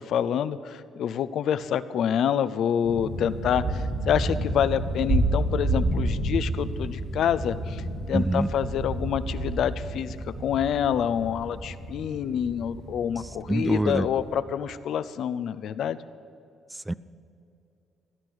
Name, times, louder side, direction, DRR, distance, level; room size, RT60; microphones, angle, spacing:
voice 1, 0.0-16.0, left 9 dB, 75° left, 14 dB, 0.6 m, -27 dB
sound 1, 2.8-14.4, right 1 dB, 75° right, 3.6 m, -30 dB
voice 2, 8.1-8.5 13.5-14.1 16.9-17.0, right 1 dB, 10° right, 17 dB, 0.4 m, -24 dB
16.5 x 10.5 x 6.3 m, 2.6 s
cardioid pair, 90°, 0 cm